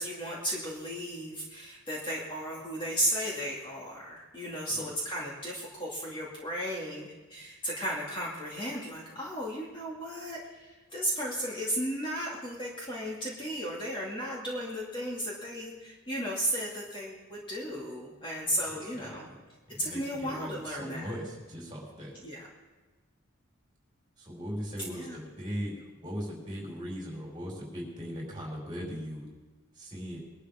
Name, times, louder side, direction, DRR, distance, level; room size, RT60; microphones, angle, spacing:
voice 1, 0.0-19.3 19.8-21.1 22.2-22.4 24.9-25.2, equal, 25° left, -5 dB, 2.4 m, -35 dB
voice 2, 18.7-19.4 19.7-22.1 24.2-25.7 26.0-29.2 29.8-30.2, equal, 20° right, -3 dB, 5.2 m, -39 dB
22.0 x 12.0 x 3.7 m, 1.2 s
head